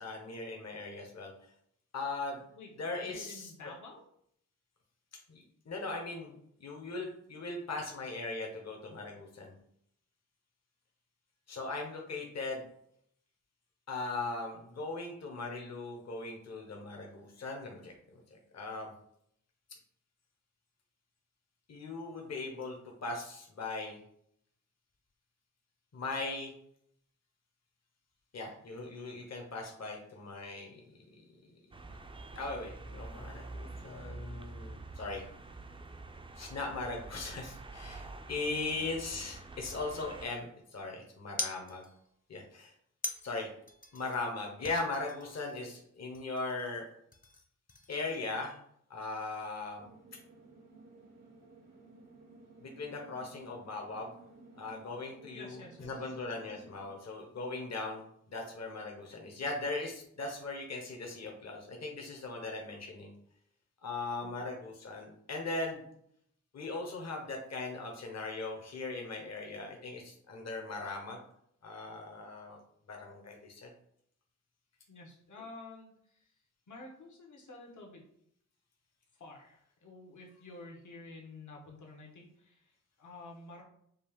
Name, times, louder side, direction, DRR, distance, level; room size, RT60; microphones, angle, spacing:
voice 1, 0.0-1.3 1.9-2.4 2.8-3.7 5.3-6.3 6.6-9.5 11.5-12.7 13.9-18.9 21.7-24.0 25.9-26.5 28.3-31.2 31.5-31.6 32.3-35.2 36.4-41.9 42.3-42.7 43.2-43.5 43.9-46.9 47.9-48.6 48.9-49.9 52.6-54.1 54.5-63.1 63.8-65.8 66.5-71.2 71.6-72.6 72.9-73.7, left 3 dB, 55° left, 1 dB, 1.0 m, -39 dB
voice 2, 3.0-4.1 55.3-56.1 74.9-76.3 76.7-78.0 79.2-83.6, left 3 dB, 75° left, 0 dB, 1.2 m, -50 dB
sound 1, 31.7-40.3, right 2 dB, 20° right, 0.4 m, -47 dB
sound 2, 41.4-42.2 43.0-44.3 44.6-45.8 46.1-46.8 47.1-48.3, left 1 dB, 30° left, 0.7 m, -44 dB
sound 3, 49.7-56.8, right 3 dB, 85° right, 1.4 m, -56 dB
5.3 x 2.4 x 3.5 m, 0.70 s
wide cardioid pair, 75°, 31 cm